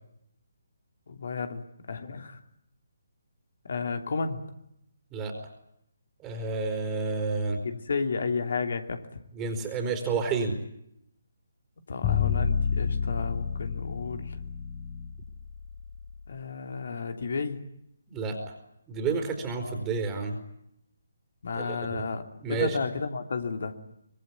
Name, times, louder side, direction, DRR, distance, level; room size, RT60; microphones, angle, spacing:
voice 1, 1.1-2.4 3.6-4.4 7.6-9.2 11.9-14.4 16.3-17.6 21.4-22.2 22.5-23.7, left 4 dB, 55° left, 7 dB, 3.0 m, -32 dB
voice 2, 6.2-7.6 9.3-10.6 18.1-18.4 18.9-20.4 21.5-21.7 22.4-22.8, right 4 dB, 15° right, 4 dB, 4.2 m, -30 dB
sound 1, 12.0-16.1, left 6 dB, 25° left, 2.0 m, -29 dB
25.0 x 22.0 x 9.5 m, 0.78 s
figure-of-eight pair, 140°, 0 cm